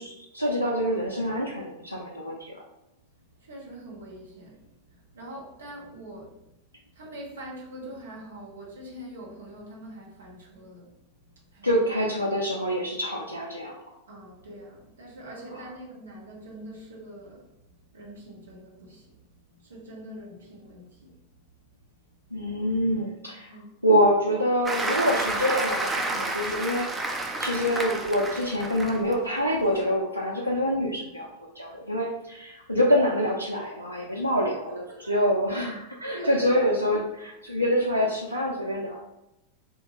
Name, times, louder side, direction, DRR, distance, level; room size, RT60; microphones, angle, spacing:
voice 1, 0.0-2.6 11.6-13.8 15.5-15.6 22.3-23.5 23.8-26.9 27.4-31.3 31.6-39.0, equal, 90° left, -3 dB, 0.3 m, -26 dB
voice 2, 3.4-6.4 6.9-11.0 11.5-11.7 14.1-17.5 17.9-19.1 19.5-21.1 23.5-23.7 34.9-35.1 36.1-36.6, right 1 dB, 70° right, -3 dB, 0.9 m, -43 dB
Applause, 24.7-29.1 29.6-29.8, right 2 dB, 15° right, 0.3 m, -30 dB
2.8 x 2.2 x 2.9 m, 0.89 s
figure-of-eight pair, 90°, 0 cm